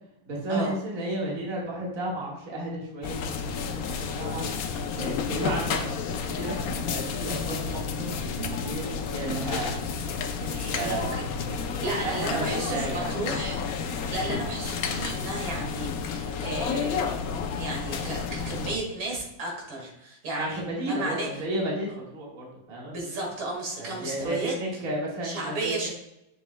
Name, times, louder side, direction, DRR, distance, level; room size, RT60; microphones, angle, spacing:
voice 1, 0.3-4.5 5.0-9.8 10.4-11.1 11.7-13.1 20.4-23.0 23.8-25.9, right 1 dB, 45° right, -3 dB, 2.1 m, -33 dB
sound 1, 3.0-18.8, left 5 dB, 65° left, 0.9 m, -31 dB
voice 2, 10.8-11.3 11.6-13.6 13.9-17.1 17.6-21.3 22.9-24.5 25.2-25.9, right 2 dB, 80° right, -1 dB, 2.8 m, -33 dB
7.2 x 6.8 x 2.2 m, 0.87 s
omnidirectional pair, 2.1 m